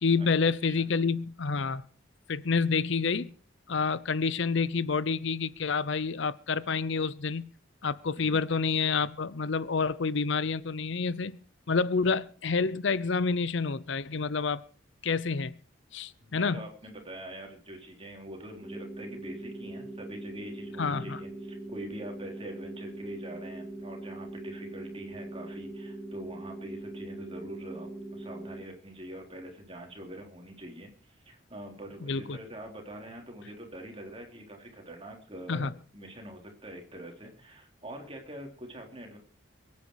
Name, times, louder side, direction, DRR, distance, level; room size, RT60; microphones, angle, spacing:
voice 1, 0.0-1.8 2.3-3.3 3.7-7.5 7.8-11.4 11.7-14.6 15.0-15.6 15.9-16.6 20.8-21.2 32.0-32.4 35.5-35.7, left 4 dB, 65° left, 0.6 m, -28 dB
voice 2, 16.2-39.2, right 1 dB, 25° right, 3.7 m, -44 dB
sound 1, 18.6-28.6, right 2 dB, 10° right, 1.7 m, -41 dB
23.5 x 9.5 x 4.8 m
head